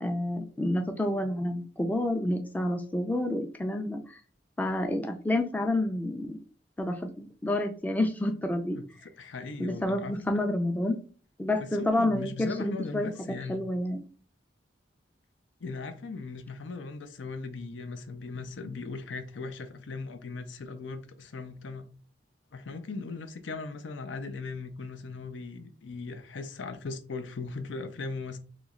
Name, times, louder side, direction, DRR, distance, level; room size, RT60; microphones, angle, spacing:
voice 1, 0.0-4.2 4.6-6.3 6.8-8.8 9.6-11.0 11.4-13.1 13.5-14.1, left 1 dB, 10° left, 0.3 m, -29 dB
voice 2, 8.7-10.4 11.6-13.7 15.6-21.9 22.5-28.4, left 4 dB, 90° left, 0.6 m, -38 dB
3.1 x 3.0 x 3.7 m
head